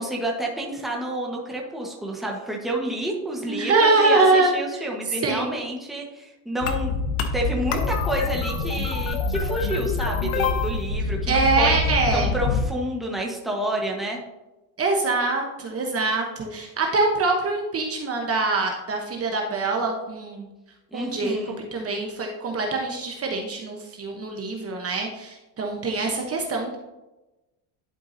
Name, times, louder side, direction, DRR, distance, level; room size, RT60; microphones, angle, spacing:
voice 1, 0.0-6.9 7.3-11.8 12.1-14.2 20.9-21.6, right 1 dB, ahead, -1 dB, 1.2 m, -29 dB
voice 2, 3.5-4.8 5.2-5.5 11.3-12.3 14.8-20.5 20.9-21.4 21.7-26.8, right 3 dB, 30° right, 1 dB, 1.0 m, -24 dB
sound 1, 6.6-12.7, left 4 dB, 90° left, 0.9 m, -25 dB
11.0 x 4.6 x 2.7 m, 1.0 s
cardioid pair, 120°, 44 cm